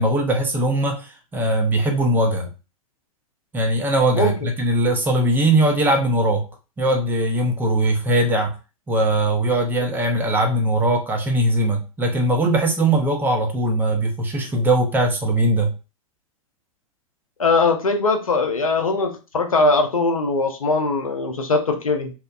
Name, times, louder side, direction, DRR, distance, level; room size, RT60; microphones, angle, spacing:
voice 1, 0.0-2.5 3.5-6.5 6.8-8.6 8.9-15.7, right 1 dB, 10° right, 3 dB, 0.5 m, -20 dB
voice 2, 17.4-22.1, left 3 dB, 75° left, 5 dB, 0.6 m, -20 dB
2.8 x 2.1 x 2.4 m, 0.30 s
figure-of-eight pair, 95°, 18 cm